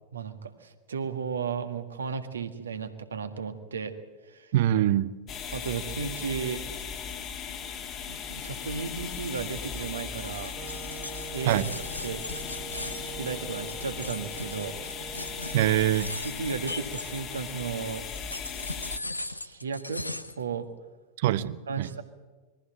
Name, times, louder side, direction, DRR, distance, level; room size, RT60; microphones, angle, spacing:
voice 1, 0.1-3.9 4.2-4.5 5.5-6.6 8.1-10.5 11.3-11.6 12.0-12.3 12.8-14.8 16.2-18.1 19.1-20.1 20.4-20.7 21.7-22.0, right 6 dB, 70° right, 8 dB, 1.6 m, -34 dB
voice 2, 4.5-5.1 11.5-11.7 15.5-16.1 21.2-21.9, right 12 dB, 55° right, 17 dB, 0.7 m, -24 dB
sound 1, 5.3-19.0, left 7 dB, 30° left, 1.8 m, -38 dB
sound 2, 10.1-17.6 18.1-20.4, left 2 dB, 85° left, 0.8 m, -39 dB
Wind instrument woodwind instrument, 10.6-16.2, right 9 dB, 20° right, 1.2 m, -45 dB
22.0 x 15.0 x 8.9 m, 1.3 s
figure-of-eight pair, 90°, 0 cm